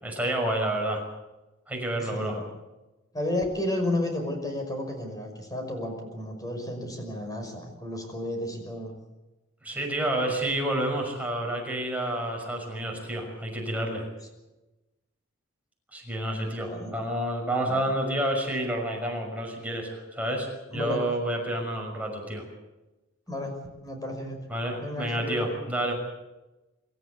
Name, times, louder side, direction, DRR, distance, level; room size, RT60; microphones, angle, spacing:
voice 1, 0.0-1.0 1.7-2.4 9.6-14.0 15.9-22.4 24.5-25.9, right 1 dB, 5° right, 0 dB, 6.1 m, -29 dB
voice 2, 1.9-2.4 3.1-8.9 16.7-16.9 17.7-17.8 20.7-21.0 23.3-23.5 23.8-24.4 24.8-25.5, left 1 dB, 20° left, 4 dB, 5.7 m, -32 dB
26.0 x 14.0 x 8.4 m, 1.1 s
head